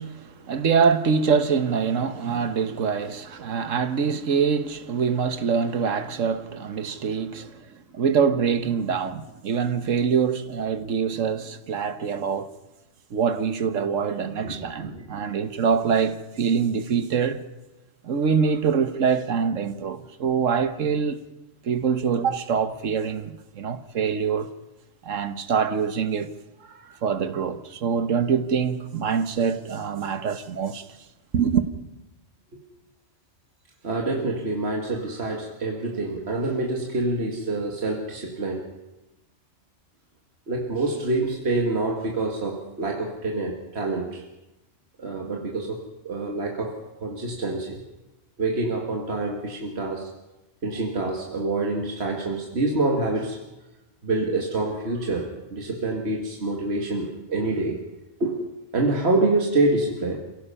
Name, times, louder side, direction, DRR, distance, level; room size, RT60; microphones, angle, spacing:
voice 1, 0.0-12.5 13.1-17.4 18.0-21.2 21.6-24.5 25.0-26.3 26.7-30.9 31.3-31.7, right 6 dB, 80° right, 1.5 m, -24 dB
voice 2, 14.4-15.1 32.5-32.6 33.8-38.7 40.5-44.2 45.0-45.8 46.0-47.8 48.4-50.1 50.6-53.4 54.0-57.8 58.2-58.4 58.7-60.2, right 2 dB, 55° right, 2.1 m, -26 dB
28.5 x 17.0 x 5.7 m
omnidirectional pair, 1.3 m